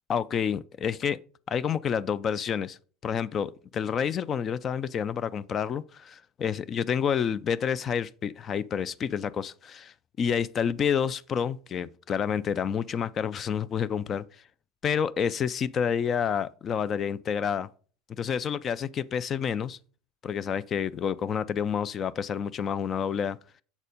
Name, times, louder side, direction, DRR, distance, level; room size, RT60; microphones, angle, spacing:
voice 1, 0.1-1.2 1.5-2.8 3.0-14.2 14.8-17.7 18.2-19.8 20.2-23.6, left 7 dB, 35° left, 0.4 m, -29 dB
7.1 x 4.2 x 5.1 m
hypercardioid pair, 85°, 0 cm